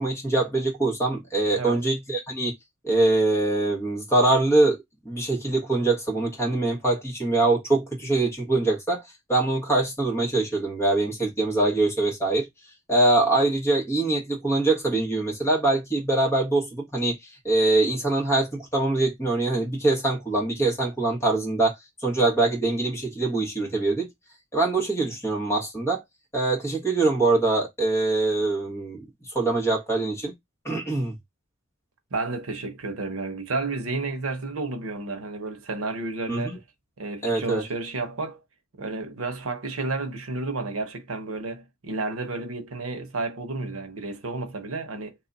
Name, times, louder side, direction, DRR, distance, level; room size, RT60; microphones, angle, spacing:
voice 1, 0.0-2.5 2.8-4.8 5.0-9.0 9.3-12.5 12.9-17.2 17.4-21.7 22.0-24.1 24.5-26.0 26.3-29.0 29.3-30.3 30.6-31.1 36.3-36.6 37.2-37.6, right 2 dB, 15° left, 1.3 m, -23 dB
voice 2, 32.1-36.6 37.0-38.4 38.8-45.1, right 3 dB, 85° right, 0.8 m, -31 dB
2.8 x 2.4 x 3.8 m
head